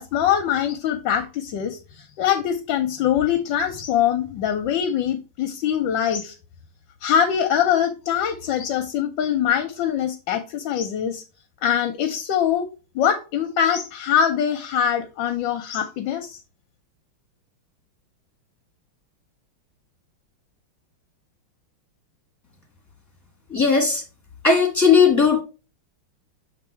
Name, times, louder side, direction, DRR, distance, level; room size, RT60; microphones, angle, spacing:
voice 1, 0.0-6.3 7.0-11.2 11.6-12.7 12.9-16.4, left 9 dB, 70° left, 1.2 m, -23 dB
voice 2, 23.5-24.0 24.4-25.4, left 5 dB, 10° left, 1.5 m, -17 dB
6.9 x 3.3 x 4.4 m
omnidirectional pair, 2.3 m